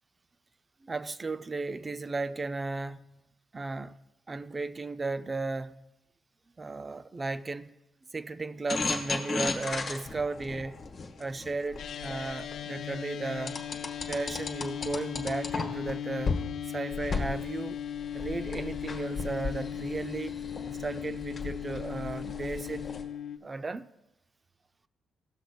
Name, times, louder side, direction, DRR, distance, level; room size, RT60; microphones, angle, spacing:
voice 1, 0.8-3.0 3.5-4.0 4.3-5.7 6.6-7.7 8.1-10.8 11.2-13.6 14.1-16.4 16.7-17.8 18.1-20.4 20.8-22.9 23.4-23.9, right 3 dB, 25° right, 0.3 m, -35 dB
sound 1, 8.7-12.6 13.5-15.9 16.3-16.4 16.9-23.0, left 4 dB, 45° left, 1.2 m, -35 dB
sound 2, 11.8-23.4, left 9 dB, 65° left, 0.4 m, -38 dB
16.0 x 6.4 x 2.2 m
cardioid pair, 90°, 0 cm